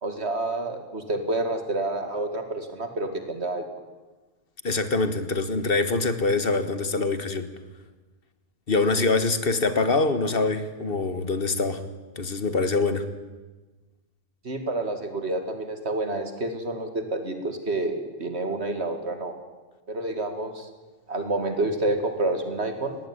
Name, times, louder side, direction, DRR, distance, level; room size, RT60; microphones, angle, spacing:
voice 1, 0.0-3.6 14.4-19.3 19.9-20.7 21.1-23.0, right 2 dB, 75° right, 7 dB, 2.6 m, -28 dB
voice 2, 4.6-7.5 8.7-11.8 12.2-13.1, left 3 dB, 60° left, 11 dB, 1.6 m, -24 dB
19.0 x 15.5 x 9.8 m, 1.2 s
omnidirectional pair, 1.1 m